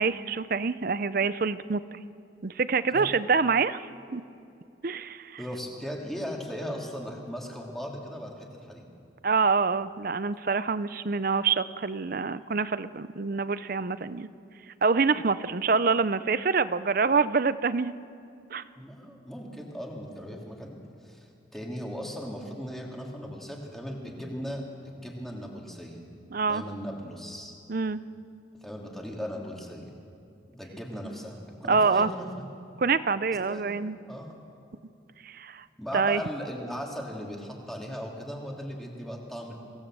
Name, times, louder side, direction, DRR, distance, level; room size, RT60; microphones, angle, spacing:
voice 1, 0.0-2.0 2.4-3.8 4.1-4.2 4.8-5.4 9.2-14.3 14.8-17.9 18.5-18.6 26.3-26.6 27.7-28.0 31.7-32.1 32.8-34.0 35.2-35.6 35.9-36.2, right 4 dB, 50° right, 14 dB, 0.6 m, -26 dB
voice 2, 5.4-8.9 18.8-26.0 26.4-27.5 28.6-29.9 30.5-32.3 33.5-33.8 34.1-34.3 35.8-39.5, equal, ahead, -1 dB, 2.6 m, -38 dB
24.0 x 17.5 x 7.6 m, 2.6 s
head